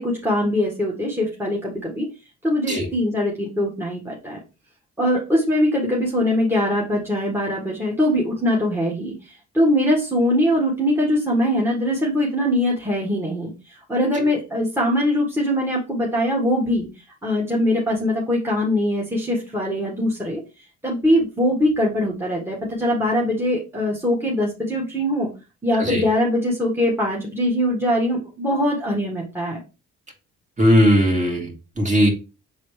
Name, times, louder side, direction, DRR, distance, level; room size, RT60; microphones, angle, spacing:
voice 1, 0.0-2.1 2.4-4.4 5.0-16.9 17.2-20.4 20.8-25.3 25.6-29.6, left 1 dB, 10° right, -3 dB, 1.8 m, -22 dB
voice 2, 30.6-32.1, equal, 25° right, 1 dB, 2.4 m, -18 dB
7.0 x 4.1 x 3.3 m, 0.29 s
cardioid pair, 90°, 30 cm